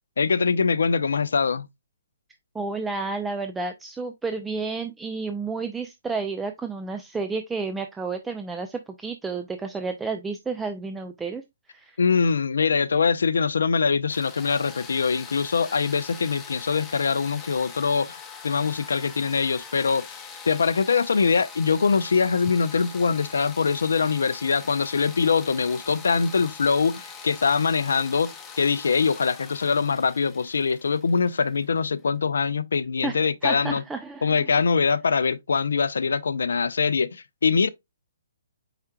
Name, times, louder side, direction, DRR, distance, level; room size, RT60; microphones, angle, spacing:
voice 1, 0.2-1.7 12.0-20.0 20.5-33.8 34.2-37.7, left 5 dB, 70° left, 0.5 m, -23 dB
voice 2, 2.5-11.4 11.7-12.0 33.0-34.5, right 4 dB, 10° right, 0.4 m, -31 dB
sound 1, 14.1-31.8, left 5 dB, 15° left, 0.7 m, -43 dB
4.8 x 4.4 x 2.3 m
hypercardioid pair, 135°, 0 cm